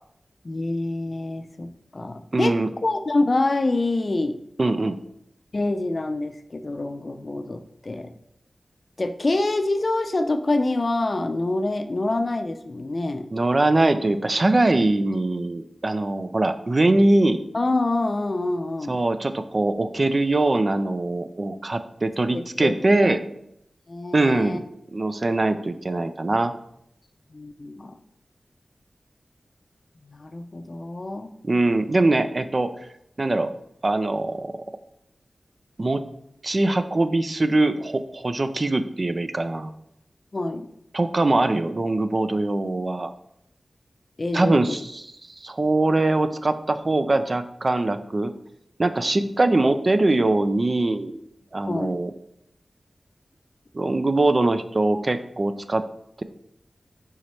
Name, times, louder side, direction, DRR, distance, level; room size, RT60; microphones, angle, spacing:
voice 1, 0.4-4.4 5.5-8.1 9.0-13.3 17.5-19.0 22.3-22.7 23.0-23.1 23.9-24.6 27.3-28.0 30.0-31.3 40.3-40.7 44.2-44.6 51.7-52.0, left 2 dB, 45° left, 7 dB, 0.5 m, -26 dB
voice 2, 2.3-2.7 4.6-5.0 13.3-17.4 18.9-23.2 24.1-24.6 24.9-26.5 31.4-32.9 33.2-33.5 33.8-34.6 35.8-36.1 36.4-39.7 40.9-43.1 44.3-45.0 45.4-48.3 48.8-51.2 51.5-52.1 53.7-55.8 56.2-56.3, right 2 dB, 45° right, 9 dB, 0.4 m, -22 dB
5.1 x 4.7 x 4.3 m, 0.75 s
wide cardioid pair, 75°, 0 cm